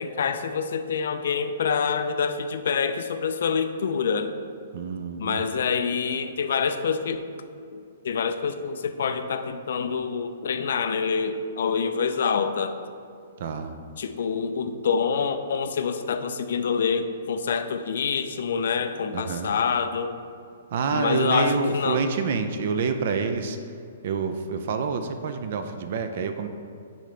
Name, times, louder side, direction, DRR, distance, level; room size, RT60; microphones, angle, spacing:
voice 1, 0.0-4.3 5.2-7.3 7.7-12.8 14.0-20.1 20.9-22.0, left 6 dB, 60° left, 9 dB, 0.4 m, -26 dB
voice 2, 4.7-5.5 13.4-13.8 19.1-19.5 20.7-23.8 24.0-26.5, right 5 dB, 40° right, 7 dB, 0.4 m, -27 dB
10.0 x 3.9 x 3.3 m, 2.3 s
hypercardioid pair, 175°, 0 cm